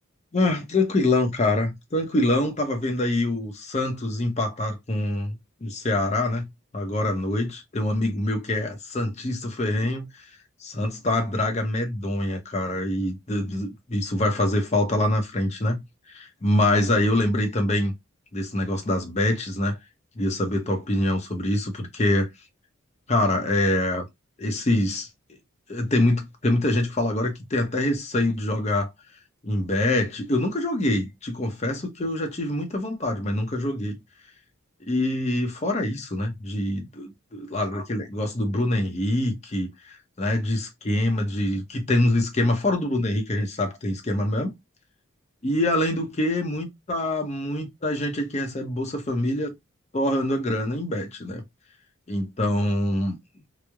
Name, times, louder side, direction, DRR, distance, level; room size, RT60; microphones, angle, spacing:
voice 1, 0.3-6.5 6.7-10.1 10.6-17.9 18.3-19.8 20.2-22.3 23.1-24.0 24.4-25.1 25.7-28.9 29.4-34.0 34.9-37.1 37.5-39.7 40.2-44.5 45.4-49.5 49.9-51.4 52.1-53.2, left 1 dB, 30° left, 0.6 m, -25 dB
3.0 x 2.0 x 2.2 m
head